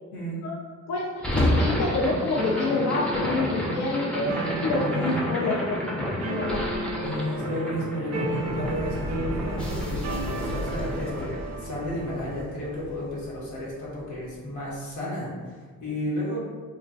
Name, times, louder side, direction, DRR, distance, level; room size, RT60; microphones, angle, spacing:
voice 1, 0.1-0.4 4.8-5.3 7.0-16.4, left 1 dB, 80° left, -5 dB, 1.1 m, -33 dB
sound 1, 1.2-13.4, left 1 dB, 5° left, 0.5 m, -30 dB
voice 2, 1.3-7.1, left 2 dB, 60° left, -3 dB, 0.4 m, -28 dB
sound 2, 2.4-12.4, right 2 dB, 55° right, 0.4 m, -34 dB
3.0 x 2.2 x 2.5 m, 1.5 s
cardioid pair, 90°, 30 cm